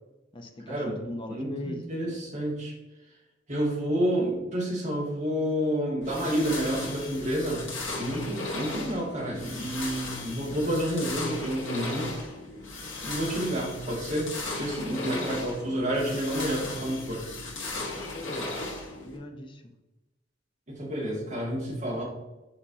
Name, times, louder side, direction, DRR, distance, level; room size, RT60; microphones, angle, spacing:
voice 1, 0.3-1.9 14.9-15.3 17.9-18.5 19.0-19.6, left 1 dB, 25° left, 3 dB, 0.7 m, -40 dB
voice 2, 1.3-2.7 3.5-7.6 8.0-12.1 13.0-17.2 20.7-22.0, equal, 40° right, -5 dB, 2.1 m, -29 dB
sound 1, 6.0-19.2, left 2 dB, 85° left, 1.6 m, -36 dB
6.8 x 5.4 x 2.8 m, 1.0 s
head